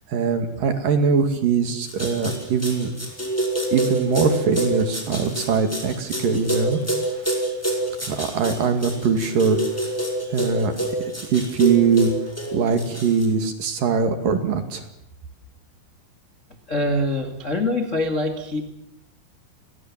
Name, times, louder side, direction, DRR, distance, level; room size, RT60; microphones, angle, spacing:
voice 1, 0.1-2.9 3.7-6.8 8.0-9.9 10.3-10.7 11.3-12.1 12.5-14.8, right 5 dB, 55° right, 7 dB, 3.4 m, -22 dB
sound 1, 1.9-13.3, right 1 dB, 5° left, 4.5 m, -26 dB
voice 2, 16.7-18.6, left 1 dB, 30° left, 4 dB, 1.3 m, -24 dB
30.0 x 22.0 x 7.4 m, 0.77 s
omnidirectional pair, 5.4 m